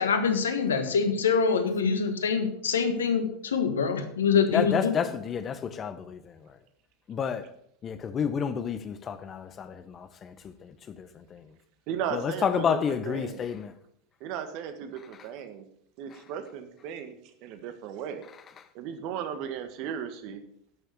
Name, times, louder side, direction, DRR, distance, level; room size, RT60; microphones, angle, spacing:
voice 1, 0.0-4.9, left 6 dB, 85° left, 1.4 m, -25 dB
voice 2, 4.5-6.6 7.1-7.5 7.8-11.5 12.1-13.7 16.1-16.2, left 7 dB, 35° left, 1.1 m, -30 dB
voice 3, 11.9-13.4 14.2-15.6 16.0-18.2 18.7-20.4, right 8 dB, 55° right, 1.6 m, -36 dB
11.0 x 6.5 x 6.7 m
hypercardioid pair, 90°, 0 cm